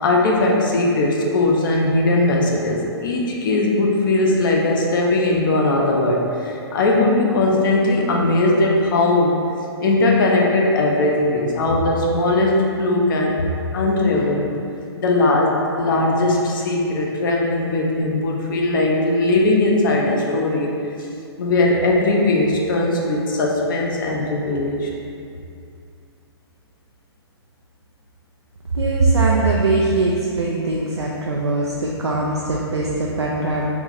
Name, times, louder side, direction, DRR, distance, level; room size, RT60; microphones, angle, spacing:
voice 1, 0.0-9.4 9.8-13.5 13.7-14.5 15.0-20.7 21.4-24.9, left 2 dB, 50° left, -1 dB, 0.6 m, -19 dB
voice 2, 28.7-33.6, right 3 dB, 85° right, -3 dB, 0.4 m, -21 dB
3.3 x 2.5 x 3.4 m, 2.5 s
figure-of-eight pair, 120°, 14 cm